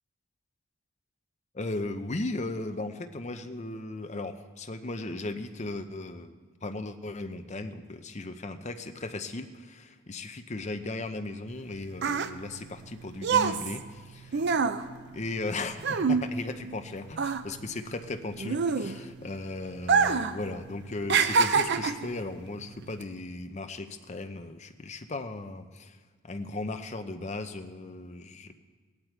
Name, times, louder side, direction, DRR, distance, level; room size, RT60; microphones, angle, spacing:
voice 1, 1.5-14.5 15.1-26.0 26.2-28.5, left 2 dB, 30° left, 8 dB, 0.6 m, -37 dB
sound 1, 11.5-16.9 17.1-19.3 19.8-20.4 20.7-22.1 22.8-23.0, right 5 dB, 50° right, 0.5 m, -26 dB
17.5 x 9.7 x 4.5 m, 1.5 s
head